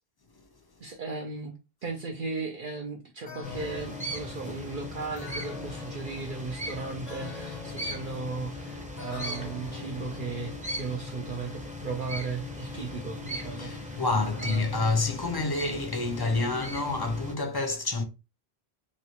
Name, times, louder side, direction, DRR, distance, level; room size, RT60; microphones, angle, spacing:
voice 1, 0.8-14.8, right 4 dB, 55° right, 0.7 m, -36 dB
Electric Piano Jazz Chords, 3.3-10.9, left 5 dB, 90° left, 1.3 m, -46 dB
sound 1, 3.4-17.3, left 1 dB, 10° right, 0.7 m, -38 dB
voice 2, 13.6-18.0, left 3 dB, 30° left, 0.5 m, -28 dB
3.2 x 2.9 x 2.8 m
omnidirectional pair, 1.1 m